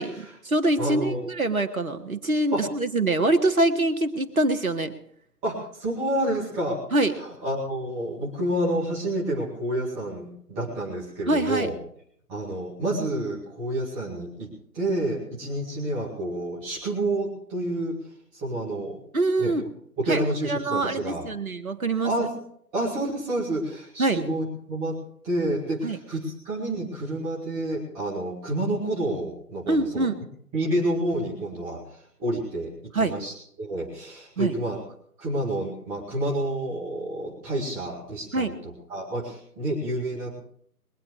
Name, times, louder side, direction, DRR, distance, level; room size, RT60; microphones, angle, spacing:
voice 1, 0.0-4.9 6.9-7.1 11.3-11.7 19.1-19.7 20.1-22.1 24.0-24.2 25.8-26.0 29.7-30.2 32.9-33.3 34.4-34.5 38.3-38.6, right 2 dB, 60° right, 8 dB, 2.0 m, -24 dB
voice 2, 0.8-1.3 2.5-2.6 5.4-6.8 7.4-11.7 12.3-14.5 14.7-17.9 18.3-19.0 19.4-19.5 20.0-21.3 22.0-22.3 22.7-25.0 25.2-30.1 30.5-31.8 32.2-33.3 33.6-34.8 35.2-38.4 38.9-40.4, right 1 dB, 5° right, -5 dB, 2.2 m, -29 dB
22.5 x 8.8 x 4.8 m, 0.65 s
figure-of-eight pair, 155°, 47 cm